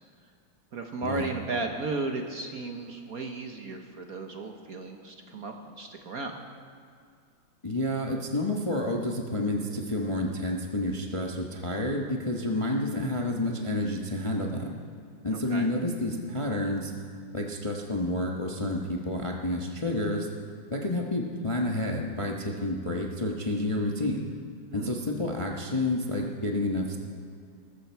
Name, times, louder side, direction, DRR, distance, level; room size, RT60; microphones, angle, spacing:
voice 1, 0.7-6.4 15.3-15.7 24.7-25.0, right 3 dB, 50° right, 4 dB, 1.3 m, -35 dB
voice 2, 7.6-14.7 15.2-16.9 17.3-20.3 20.7-24.3 24.7-27.0, left 1 dB, 20° left, 0 dB, 0.8 m, -29 dB
20.0 x 14.0 x 4.6 m, 2.3 s
omnidirectional pair, 2.3 m